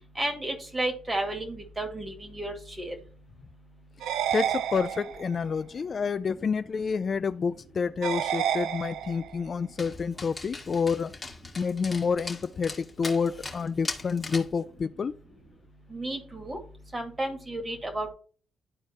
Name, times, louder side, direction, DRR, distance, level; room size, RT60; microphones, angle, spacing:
voice 1, 0.2-2.9 15.9-16.6 16.9-18.1, right 1 dB, 20° right, 5 dB, 2.3 m, -32 dB
sound 1, 4.0-5.4 8.0-9.4, right 10 dB, 80° right, 0.5 m, -30 dB
voice 2, 4.3-11.1 11.6-15.1, left 5 dB, 45° left, 13 dB, 0.4 m, -29 dB
Dog, 9.8-14.6, left 3 dB, 20° left, 1.8 m, -40 dB
12.0 x 4.4 x 3.0 m, 0.40 s
cardioid pair, 90°, 0 cm